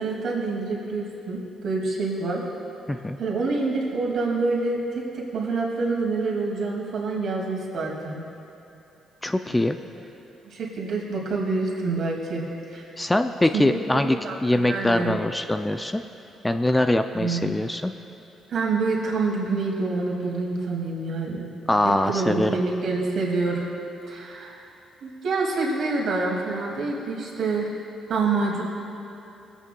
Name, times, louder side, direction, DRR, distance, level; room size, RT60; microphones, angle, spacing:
voice 1, 0.0-2.4 3.2-8.2 10.4-12.4 12.7-12.8 13.5-15.1 17.1-17.5 18.5-21.5 22.1-23.7 24.1-24.6 25.0-27.7 28.1-28.6, right 3 dB, 65° right, -3 dB, 2.3 m, -27 dB
voice 2, 9.2-9.8 13.0-14.2 14.4-16.0 16.4-17.9 21.7-22.5, left 1 dB, 10° left, 7 dB, 0.3 m, -23 dB
20.5 x 8.2 x 2.3 m, 2.9 s
cardioid pair, 90°, 0 cm